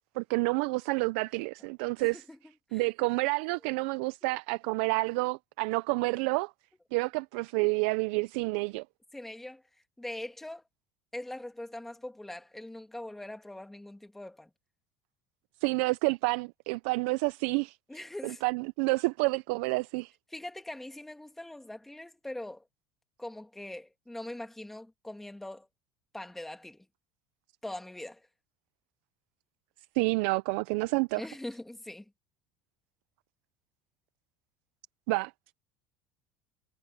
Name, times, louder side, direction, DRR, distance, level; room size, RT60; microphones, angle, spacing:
voice 1, 0.2-2.2 2.7-6.5 6.9-8.8 15.6-17.8 18.2-20.1 29.9-31.2 35.1-35.3, right 26 dB, 75° right, 0.4 m, -29 dB
voice 2, 2.0-2.4 2.7-2.9 3.4-3.5 4.2-4.4 9.1-9.6 10.0-10.6 11.1-14.5 17.9-18.4 20.3-22.6 23.2-25.7 26.1-26.8 27.6-28.2 31.2-32.0, left 1 dB, 5° left, 1.7 m, -42 dB
cardioid pair, 175°, 7 cm